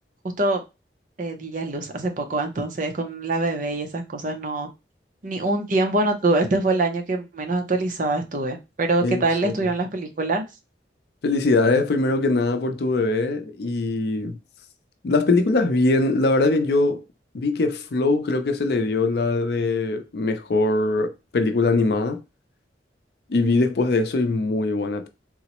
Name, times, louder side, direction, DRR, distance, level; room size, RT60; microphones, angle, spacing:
voice 1, 1.2-4.7 5.2-10.4, right 2 dB, 45° right, 0.6 m, -24 dB
voice 2, 9.0-9.7 11.2-14.4 15.0-17.0 17.3-22.2 23.3-25.1, left 3 dB, 60° left, 0.5 m, -22 dB
3.8 x 2.0 x 2.9 m
head